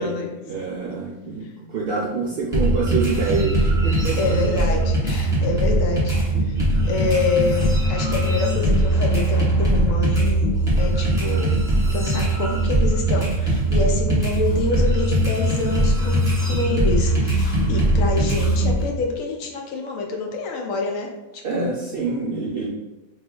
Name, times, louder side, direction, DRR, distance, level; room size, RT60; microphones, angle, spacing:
voice 1, 0.0-1.4 1.7-4.3 21.4-22.7, right 4 dB, 60° right, -3 dB, 0.6 m, -26 dB
sound 1, 2.5-18.8, right 1 dB, 15° right, 1.3 m, -20 dB
voice 2, 4.2-6.2 6.4-6.6 6.9-10.5 10.8-11.5 11.9-21.7, left 4 dB, 70° left, 1 dB, 1.0 m, -27 dB
3.1 x 2.9 x 3.7 m, 1.0 s
omnidirectional pair, 1.5 m